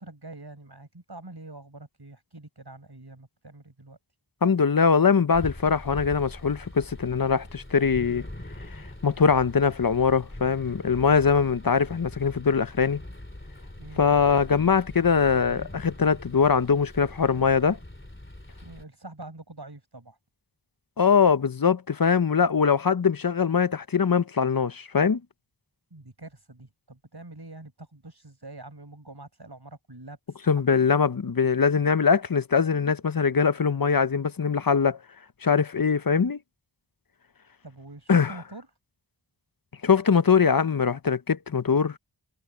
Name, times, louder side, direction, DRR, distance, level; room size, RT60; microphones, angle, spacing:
voice 1, 0.0-4.0 13.8-14.2 18.6-20.2 25.9-30.8 37.6-38.7, right 2 dB, 55° right, 6.0 m, -45 dB
voice 2, 4.4-8.2 8.7-13.0 14.0-17.8 21.0-25.2 30.5-35.0 35.4-36.4 38.1-38.3 39.8-41.9, left 6 dB, 50° left, 0.7 m, -22 dB
sound 1, 5.3-18.8, left 1 dB, 25° left, 3.2 m, -42 dB
wide cardioid pair, 40°, 46 cm